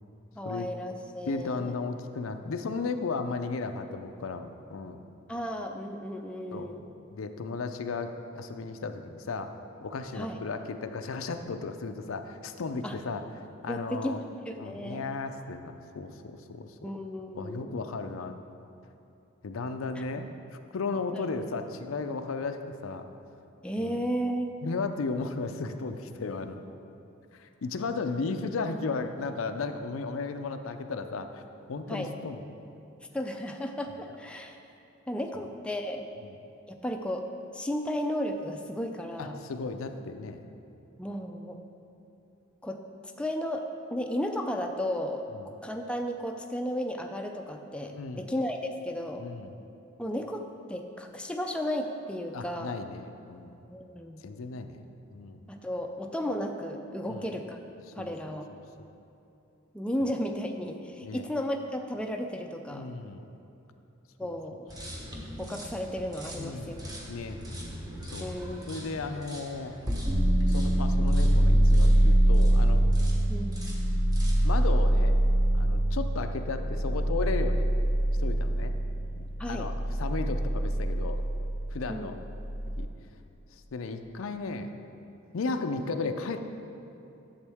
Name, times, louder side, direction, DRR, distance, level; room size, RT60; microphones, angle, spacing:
voice 1, 0.4-1.7 5.3-6.8 10.1-10.4 12.8-13.0 13.7-14.2 14.5-15.1 16.8-17.8 19.9-20.0 21.1-21.2 23.6-24.5 31.9-32.1 33.1-34.6 35.1-36.1 36.7-39.4 41.0-41.6 42.6-42.8 43.2-45.2 45.6-49.2 50.0-52.8 53.7-54.2 55.5-57.6 58.0-58.5 59.7-62.9 64.2-64.7 65.4-66.8 68.2-68.9 73.3-73.6 79.4-79.7 81.9-82.1, equal, 5° left, 3 dB, 0.4 m, -34 dB
voice 2, 1.3-5.0 6.5-6.7 7.1-9.5 9.8-13.2 13.6-14.2 14.6-16.9 17.3-18.3 19.4-20.3 20.7-23.1 23.8-24.0 24.6-26.6 27.3-31.4 31.7-32.4 35.3-35.4 39.2-40.4 45.4-45.5 47.9-48.3 49.2-49.5 52.3-53.6 54.2-55.5 57.1-57.3 58.0-58.1 61.0-61.3 62.7-63.3 66.3-67.4 68.1-68.3 68.7-69.7 70.5-72.8 74.4-75.2 75.5-77.7 78.2-78.7 79.2-81.2 81.7-82.1 82.8-82.9 83.7-84.7 85.3-86.4, left 4 dB, 90° left, 7 dB, 0.5 m, -35 dB
sound 1, 64.7-72.6 72.9-73.2 73.5-74.5, equal, 20° right, 1.1 m, -41 dB
sound 2, 70.1-82.8, right 1 dB, 40° right, 1.1 m, -24 dB
11.0 x 7.2 x 3.5 m, 2.8 s
head